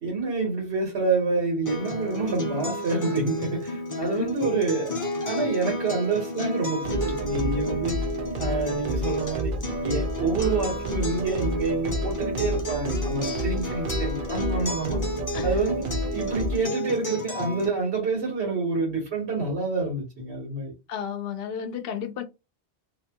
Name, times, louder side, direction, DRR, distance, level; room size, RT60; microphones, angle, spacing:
voice 1, 0.0-8.0 8.4-9.5 9.8-15.0 15.4-15.8 16.1-20.7, right 3 dB, 85° right, 1.4 m, -27 dB
Acoustic guitar, 1.7-17.7, left 2 dB, 20° left, 0.6 m, -32 dB
voice 2, 4.0-4.4 15.3-15.6 20.9-22.2, left 8 dB, 70° left, 0.8 m, -33 dB
sound 1, 6.8-16.6, right 1 dB, 60° right, 0.7 m, -31 dB
2.8 x 2.2 x 2.7 m
omnidirectional pair, 1.1 m